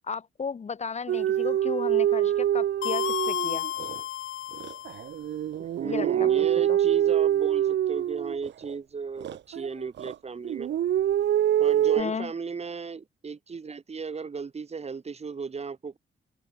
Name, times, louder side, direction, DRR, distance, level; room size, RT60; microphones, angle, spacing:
voice 1, 0.0-3.7 5.8-6.8 12.0-12.3, left 5 dB, 35° left, 1.3 m, -34 dB
sound 1, 1.1-4.0 4.5-8.7 9.2-10.1 10.4-12.0, right 11 dB, 60° right, 0.7 m, -25 dB
sound 2, 2.8-5.2, left 13 dB, 75° left, 0.6 m, -32 dB
voice 2, 5.6-10.7 11.6-16.0, right 5 dB, 30° right, 1.9 m, -36 dB
open air
wide cardioid pair, 145°, 20 cm